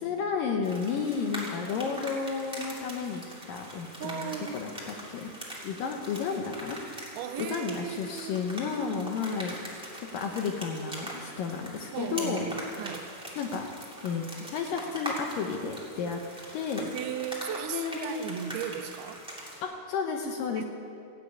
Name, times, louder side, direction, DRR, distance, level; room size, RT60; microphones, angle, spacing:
voice 1, 0.0-3.2 3.5-5.3 5.6-6.8 7.4-9.6 10.0-12.5 13.4-13.7 14.0-14.2 14.5-16.2 16.5-16.9 17.7-18.4 19.6-20.6, left 5 dB, 75° left, 3 dB, 2.2 m, -32 dB
sound 1, 0.6-19.6, equal, ahead, 1.5 m, -42 dB
voice 2, 4.0-4.6 7.2-8.4 11.9-13.1 16.9-19.2 20.5-20.6, right 9 dB, 80° right, 8 dB, 2.5 m, -36 dB
15.0 x 8.2 x 9.3 m, 2.5 s
omnidirectional pair, 4.7 m